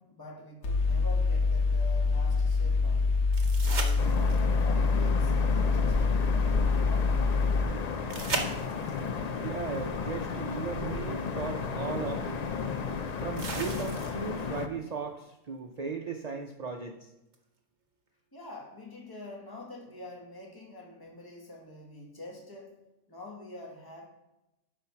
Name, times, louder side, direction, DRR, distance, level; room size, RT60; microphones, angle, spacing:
voice 1, 0.0-3.1 3.6-6.1 6.7-7.4 18.3-22.8 23.1-24.1, left 2 dB, 15° left, -1 dB, 1.5 m, -46 dB
Mechanical fan, 0.6-7.6, left 4 dB, 55° left, 1.1 m, -25 dB
sound 1, 3.3-4.6 8.1-9.1 11.0-11.1 13.4-14.4 17.3-17.4, right 3 dB, 35° right, 1.0 m, -36 dB
sound 2, 4.0-14.7, left 5 dB, 80° left, 0.3 m, -34 dB
voice 2, 9.4-12.4 13.2-17.1, right 5 dB, 70° right, 4 dB, 0.4 m, -37 dB
10.0 x 4.3 x 5.8 m, 0.94 s
omnidirectional pair, 1.5 m